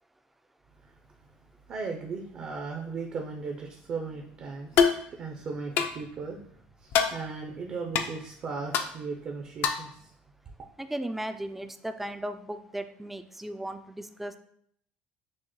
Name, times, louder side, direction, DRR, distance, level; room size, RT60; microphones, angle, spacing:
voice 1, 1.7-6.4 6.8-10.1, right 4 dB, 45° right, 1 dB, 0.6 m, -37 dB
sound 1, 4.8-5.0 5.8-6.0 6.9-7.1 7.9-8.1 8.7-8.9 9.6-9.9, left 7 dB, 65° left, 0.4 m, -23 dB
voice 2, 10.8-14.4, right 1 dB, 5° right, 9 dB, 0.3 m, -36 dB
6.2 x 2.1 x 3.0 m, 0.67 s
supercardioid pair, 105°, 4 cm